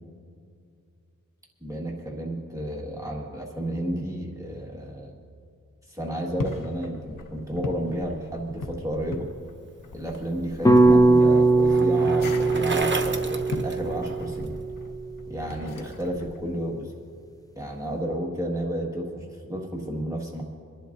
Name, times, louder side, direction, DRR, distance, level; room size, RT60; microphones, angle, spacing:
voice 1, 1.6-5.1 5.9-9.3 9.9-14.6 15.3-16.9 17.6-20.4, right 1 dB, 10° right, -3 dB, 1.7 m, -32 dB
sound 1, 6.2-16.4, left 3 dB, 85° left, 0.9 m, -39 dB
Bicycle, 10.1-14.5, right 3 dB, 35° right, 1.0 m, -34 dB
sound 2, 10.7-14.9, right 2 dB, 10° left, 0.5 m, -20 dB
28.5 x 11.5 x 2.6 m, 2.3 s
wide cardioid pair, 100°, 32 cm